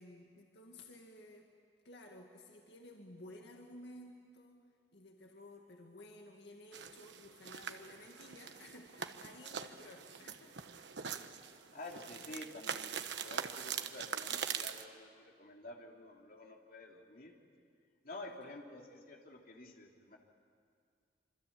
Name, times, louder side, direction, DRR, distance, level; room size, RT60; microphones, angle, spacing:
voice 1, 0.0-1.5 1.8-4.6 4.9-10.6 18.2-18.4, left 1 dB, 75° left, 1 dB, 2.2 m, -54 dB
sound 1, 6.7-14.8, right 7 dB, 85° right, 1.2 m, -43 dB
voice 2, 11.7-17.3 18.0-20.2, left 2 dB, 55° left, 1 dB, 3.0 m, -50 dB
26.5 x 25.0 x 8.6 m, 2.1 s
head